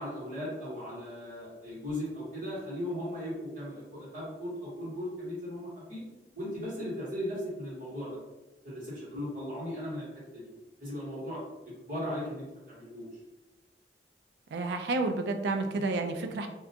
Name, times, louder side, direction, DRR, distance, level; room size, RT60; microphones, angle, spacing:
voice 1, 0.0-6.1 6.3-8.2 8.6-10.5 10.8-13.2 15.7-15.8, left 1 dB, 50° right, -8 dB, 1.2 m, -37 dB
voice 2, 14.5-16.5, right 3 dB, 70° right, 6 dB, 0.3 m, -30 dB
2.4 x 2.2 x 2.7 m, 1.1 s
head